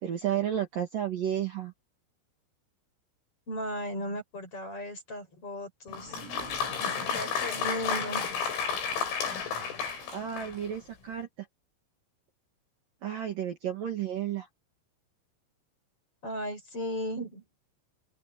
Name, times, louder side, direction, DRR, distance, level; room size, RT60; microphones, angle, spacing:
voice 1, 0.0-1.7 10.1-11.3 13.0-14.5, right 10 dB, 50° right, 3.5 m, -32 dB
voice 2, 3.5-6.2 7.1-8.3 16.2-17.4, left 1 dB, 25° left, 8.0 m, -36 dB
Applause, 5.9-10.8, left 6 dB, 90° left, 8.7 m, -32 dB
open air
omnidirectional pair, 5.8 m